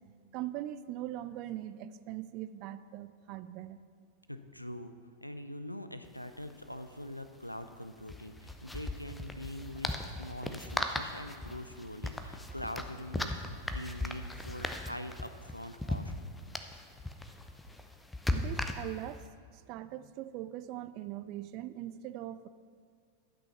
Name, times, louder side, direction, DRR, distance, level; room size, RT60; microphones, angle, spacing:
voice 1, 0.3-3.8 18.3-22.5, right 13 dB, 40° right, 14 dB, 0.4 m, -41 dB
voice 2, 4.3-4.9 5.2-16.1, left 1 dB, 90° left, 9 dB, 0.5 m, -43 dB
sound 1, 6.0-6.1 6.4-6.5 8.0-19.2, left 1 dB, 5° left, 0.6 m, -38 dB
11.0 x 6.2 x 5.7 m, 2.2 s
figure-of-eight pair, 90°, 0 cm